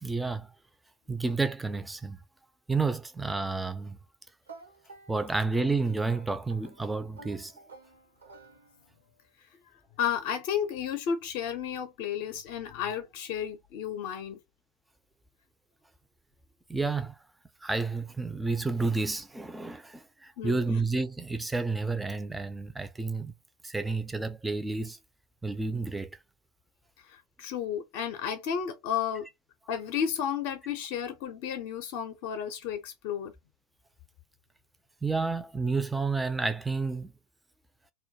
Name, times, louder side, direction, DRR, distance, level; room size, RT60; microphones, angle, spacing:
voice 1, 0.0-0.5 1.1-2.2 2.7-4.0 5.1-7.5 16.7-17.1 17.6-23.3 23.6-25.0 25.4-26.2 35.0-37.1, right 3 dB, 10° right, 0.4 m, -30 dB
sound 1, 4.5-9.1, right 3 dB, 85° right, 0.8 m, -52 dB
voice 2, 10.0-14.4 20.4-20.6 27.1-29.3 29.7-33.3, left 8 dB, 55° left, 0.5 m, -32 dB
2.2 x 2.1 x 2.7 m
hypercardioid pair, 85°, 0 cm